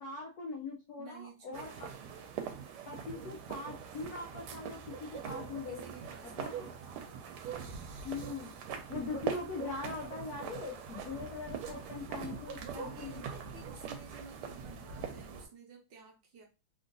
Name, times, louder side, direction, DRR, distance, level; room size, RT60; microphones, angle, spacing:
voice 1, 0.0-1.9 2.9-5.8 6.4-7.2 8.0-13.3, left 3 dB, 80° left, 0 dB, 0.8 m, -42 dB
voice 2, 1.0-2.0 5.7-6.7 12.2-16.4, right 4 dB, 70° right, 1 dB, 1.2 m, -53 dB
sound 1, 1.5-15.5, right 7 dB, 85° right, 1.5 m, -42 dB
3.7 x 2.4 x 2.5 m, 0.29 s
omnidirectional pair, 2.4 m